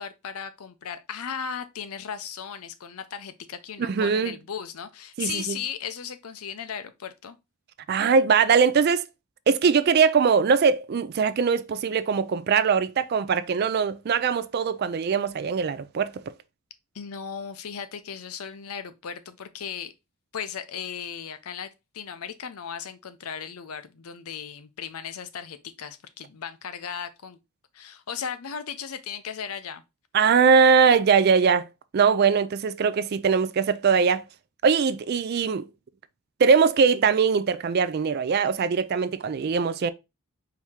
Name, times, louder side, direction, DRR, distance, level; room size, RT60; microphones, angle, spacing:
voice 1, 0.0-7.4 16.9-19.9 20.3-27.4 27.7-29.8, left 7 dB, 80° left, 0.6 m, -36 dB
voice 2, 3.9-4.4 5.2-5.6 7.9-9.0 9.5-16.1 30.1-31.7 31.9-34.2 34.6-35.7 36.4-39.9, right 5 dB, 45° right, 0.3 m, -21 dB
4.7 x 2.8 x 3.5 m
head